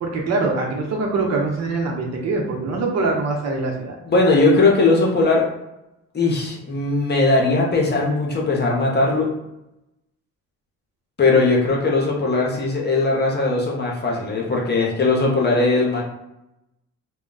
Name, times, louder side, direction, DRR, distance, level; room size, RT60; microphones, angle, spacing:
voice 1, 0.0-4.0, right 3 dB, 60° right, 0 dB, 0.8 m, -23 dB
voice 2, 4.1-5.5 6.1-9.3 11.2-16.0, left 3 dB, 35° left, -1 dB, 0.8 m, -19 dB
2.2 x 2.2 x 3.8 m, 0.89 s
cardioid pair, 90°, 30 cm